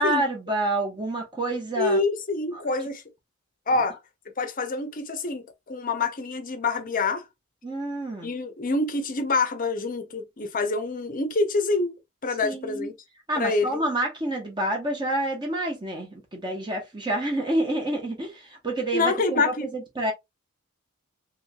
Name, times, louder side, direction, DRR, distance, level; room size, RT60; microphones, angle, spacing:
voice 1, 0.0-2.0 2.5-2.6 3.7-3.8 7.6-8.3 12.4-12.9 13.3-20.1, right 1 dB, 20° right, 0.9 m, -28 dB
voice 2, 1.8-3.0 3.7-4.0 4.4-7.2 8.2-11.9 12.2-12.9 13.4-13.8 18.9-19.7, left 3 dB, 40° left, 0.6 m, -26 dB
3.2 x 3.1 x 2.3 m
head